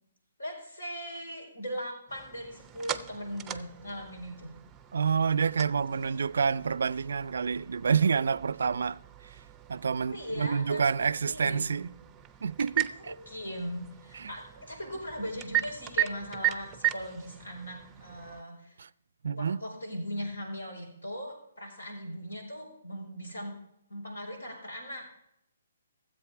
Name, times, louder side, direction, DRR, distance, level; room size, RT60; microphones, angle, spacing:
voice 1, 0.4-4.5 5.8-6.1 9.8-11.9 12.9-18.8 19.2-23.5 23.9-25.0, equal, 80° left, 4.4 m, -39 dB
sound 1, 2.1-18.4, right 16 dB, 15° right, 0.5 m, -38 dB
voice 2, 4.9-9.0 9.7-11.9 12.4-13.1 14.2-14.3 18.8-18.9 19.2-19.6, right 6 dB, 65° right, 0.4 m, -28 dB
14.0 x 7.8 x 4.8 m
figure-of-eight pair, 135°, 0 cm